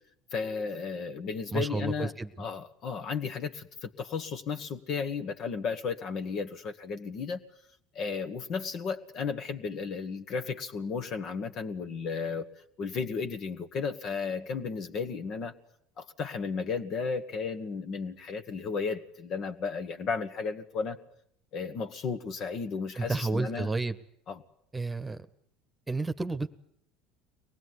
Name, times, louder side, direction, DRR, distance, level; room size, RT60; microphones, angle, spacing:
voice 1, 0.3-2.1 2.4-7.4 8.0-12.5 12.8-15.5 16.0-21.0 21.5-23.7 24.3-24.4, left 5 dB, 50° left, 8 dB, 1.8 m, -34 dB
voice 2, 1.5-2.3 23.0-24.0 24.7-25.2 25.9-26.5, right 3 dB, 15° right, 11 dB, 1.3 m, -31 dB
24.0 x 19.0 x 9.7 m, 0.72 s
hypercardioid pair, 75°, 0 cm